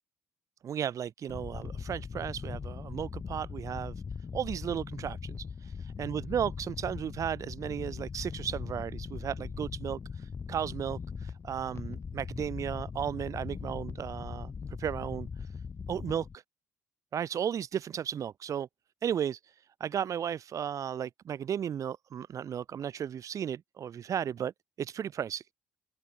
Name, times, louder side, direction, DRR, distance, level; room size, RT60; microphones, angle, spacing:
voice 1, 0.6-3.9 4.3-14.5 14.8-15.5 15.9-16.4 17.1-18.7 19.0-19.5 19.8-24.5 24.8-25.4, right 9 dB, 50° right, 3.1 m, -35 dB
sound 1, 1.3-16.3, left 5 dB, 40° left, 5.5 m, -40 dB
figure-of-eight pair, 45°, 7 cm